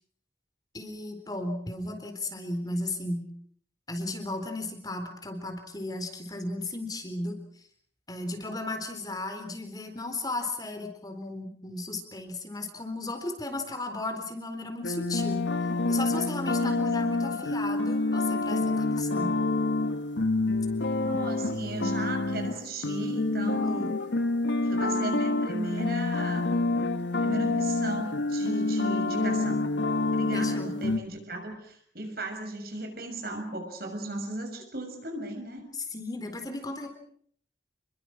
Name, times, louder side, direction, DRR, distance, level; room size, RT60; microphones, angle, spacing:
voice 1, 0.7-3.3 3.9-7.4 8.1-15.4 15.9-19.3 23.5-23.9 30.3-30.7 35.9-36.9, left 2 dB, 20° left, 5 dB, 4.0 m, -35 dB
sound 1, 14.8-31.0, left 2 dB, 85° left, 1.4 m, -27 dB
voice 2, 16.6-17.1 21.0-23.9 24.6-26.6 27.2-29.7 30.1-35.7, right 2 dB, 55° right, 5 dB, 6.7 m, -36 dB
29.5 x 22.5 x 6.3 m, 0.62 s
head